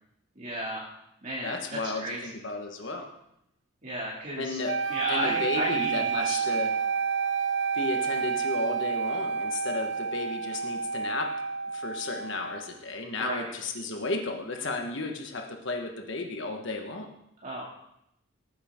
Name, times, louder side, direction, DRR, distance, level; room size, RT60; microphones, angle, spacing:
voice 1, 0.4-0.9 1.2-2.2 3.8-4.6 4.9-6.6 13.2-13.5 17.4-17.6, equal, 35° right, -6 dB, 2.4 m, -34 dB
voice 2, 1.4-3.1 4.4-4.7 5.1-6.7 7.7-11.3 11.7-17.1, left 3 dB, 60° left, 3 dB, 1.3 m, -33 dB
sound 1, 4.7-12.7, right 6 dB, 60° right, 0.6 m, -29 dB
18.0 x 9.3 x 3.7 m, 0.79 s
head